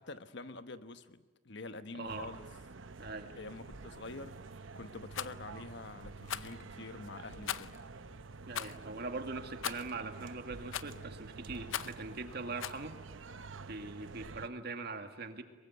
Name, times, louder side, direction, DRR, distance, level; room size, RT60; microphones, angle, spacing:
voice 1, 0.0-2.5 3.3-7.8, left 3 dB, 60° left, 1.2 m, -47 dB
voice 2, 1.9-2.3 3.0-3.3 8.5-13.0 13.7-15.4, right 3 dB, 55° right, 2.1 m, -42 dB
sound 1, 2.1-14.5, right 4 dB, 80° right, 0.9 m, -49 dB
Rattle, 5.1-5.3 6.3-6.6 7.5-7.8 8.5-8.8 9.6-9.9 10.7-11.0 11.7-12.0 12.6-12.8, left 9 dB, 85° left, 0.7 m, -38 dB
23.0 x 22.5 x 9.6 m
head